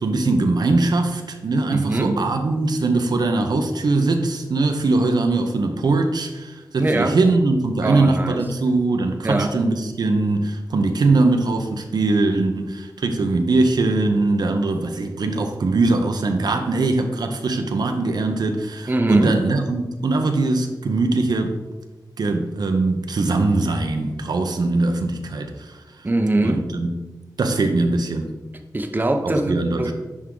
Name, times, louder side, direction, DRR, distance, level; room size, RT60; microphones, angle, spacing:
voice 1, 0.0-21.6 22.2-25.8 26.4-26.9 27.4-28.3 29.2-29.9, right 3 dB, 80° right, 5 dB, 0.7 m, -21 dB
voice 2, 1.7-2.2 6.8-7.2 7.8-8.4 9.2-9.5 18.9-19.3 26.0-26.6 28.7-29.9, right 2 dB, 25° right, 5 dB, 0.6 m, -22 dB
10.5 x 3.6 x 3.8 m, 1.1 s
wide cardioid pair, 95°, 7 cm